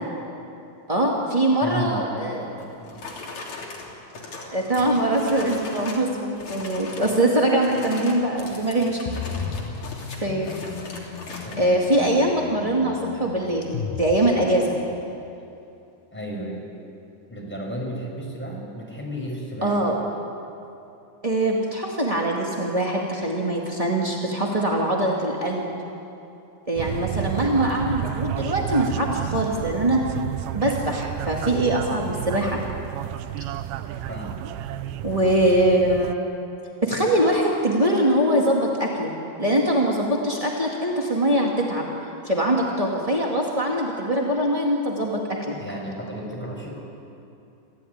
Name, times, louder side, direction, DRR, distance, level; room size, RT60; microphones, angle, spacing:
voice 1, 0.9-2.5 4.5-9.0 10.1-10.5 11.3-13.7 14.0-14.7 19.6-19.9 21.2-25.7 26.7-30.0 30.5-32.6 35.0-36.4 36.8-41.9 42.2-45.5, right 1 dB, 25° right, -2 dB, 0.7 m, -22 dB
voice 2, 1.6-3.0 11.4-12.0 16.1-16.6 17.3-19.9 34.1-34.4 45.6-46.8, right 1 dB, 5° left, -2 dB, 5.2 m, -33 dB
sound 1, 2.6-6.1 6.4-7.2 7.5-11.6, left 3 dB, 50° left, 4.2 m, -38 dB
sound 2, 9.1-15.0, left 6 dB, 70° left, 2.3 m, -35 dB
sound 3, 26.8-36.1, right 11 dB, 80° right, 2.4 m, -31 dB
26.5 x 15.5 x 9.5 m, 2.7 s
omnidirectional pair, 4.5 m